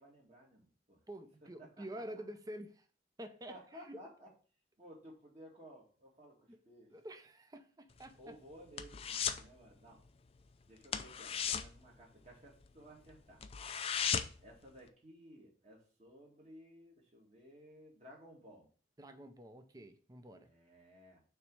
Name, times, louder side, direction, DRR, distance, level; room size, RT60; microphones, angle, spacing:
voice 1, 0.0-1.0 1.6-1.9 3.5-4.3 4.8-6.9 8.2-10.0 10.7-13.4 14.4-18.7 20.4-21.2, equal, 40° right, 2.1 m, -56 dB
voice 2, 1.1-2.9 3.2-3.6 3.9-4.0 6.5-6.6 6.9-8.4 19.0-20.5, right 1 dB, 20° right, 0.6 m, -48 dB
sound 1, 7.9-9.5 9.8-10.1 10.3-10.5 10.8-12.7 13.1-13.2 13.4-14.5 14.9-15.0, left 7 dB, 35° left, 0.4 m, -37 dB
6.4 x 3.2 x 4.7 m
head